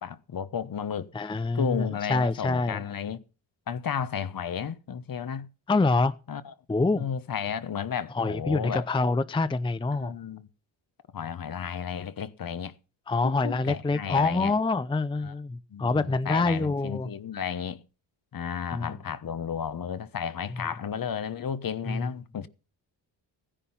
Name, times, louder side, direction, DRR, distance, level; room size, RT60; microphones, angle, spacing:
voice 1, 0.0-1.1 1.5-3.2 3.7-5.5 6.3-6.5 6.9-8.9 9.9-10.5 11.1-12.7 13.2-14.6 15.2-15.3 15.7-17.8 18.3-22.5, left 7 dB, 45° left, 1.1 m, -33 dB
voice 2, 1.1-2.8 5.7-6.1 6.7-7.1 8.1-10.1 13.1-17.1 18.7-18.9 21.9-22.1, left 3 dB, 10° left, 0.6 m, -26 dB
15.5 x 10.0 x 5.7 m
cardioid pair, 90°, 46 cm